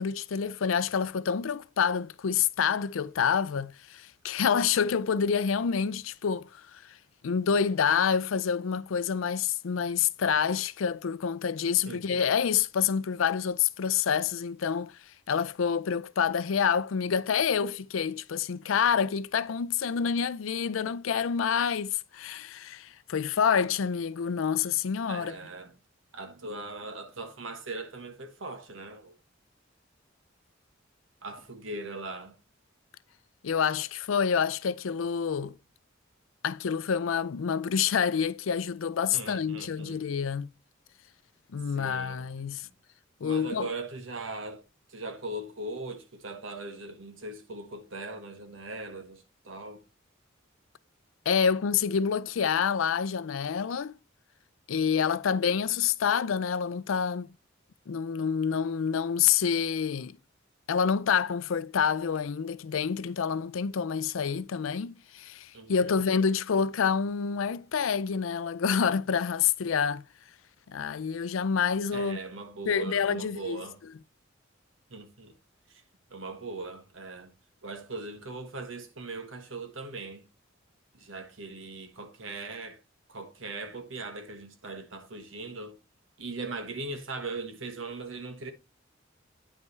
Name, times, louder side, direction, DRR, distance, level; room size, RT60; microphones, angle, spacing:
voice 1, 0.0-7.0 7.2-14.9 15.3-25.4 33.4-35.5 36.4-40.5 41.5-42.7 43.2-43.7 51.3-54.0 54.7-57.3 57.9-60.2 60.7-70.0 70.7-72.2 72.7-73.6, left 7 dB, 85° left, 0.5 m, -27 dB
voice 2, 11.9-12.3 25.1-25.8 26.1-29.1 31.2-32.4 39.0-40.0 41.7-42.2 42.6-42.7 43.2-44.6 44.9-49.8 65.5-66.0 71.9-73.8 74.9-75.4 75.7-75.8 76.1-77.3 77.6-80.2 80.9-82.8 83.1-85.8 86.2-88.5, right 3 dB, 75° right, 1.4 m, -40 dB
9.2 x 5.4 x 3.1 m
head